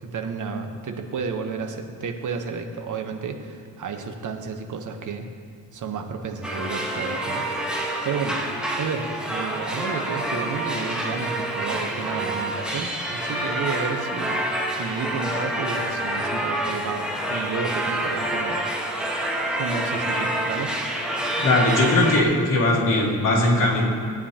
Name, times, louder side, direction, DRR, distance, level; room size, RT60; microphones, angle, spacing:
voice 1, 0.0-5.3 5.7-7.4 7.8-8.4 8.8-14.4 14.7-18.6 19.6-20.7, right 5 dB, 55° right, 5 dB, 1.0 m, -31 dB
sound 1, 6.4-22.2, right 1 dB, ahead, 1.3 m, -27 dB
voice 2, 21.4-23.8, left 2 dB, 55° left, -6 dB, 2.9 m, -20 dB
17.5 x 9.3 x 2.9 m, 2.1 s
cardioid pair, 120°, 37 cm